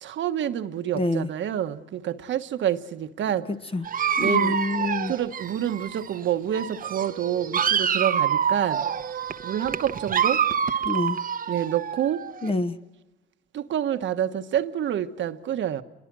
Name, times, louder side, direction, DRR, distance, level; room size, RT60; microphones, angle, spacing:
voice 1, 0.0-3.5 4.2-8.9 9.4-10.4 11.5-12.3 13.5-15.8, right 10 dB, 70° right, 1.3 m, -28 dB
voice 2, 0.9-1.3 3.5-3.9 4.2-5.1 10.8-11.2 12.4-12.8, left 2 dB, 30° left, 1.2 m, -26 dB
Dog, 3.8-6.2 6.5-12.5, right 8 dB, 45° right, 1.0 m, -27 dB
29.5 x 22.0 x 6.2 m
cardioid pair, 90°, 20 cm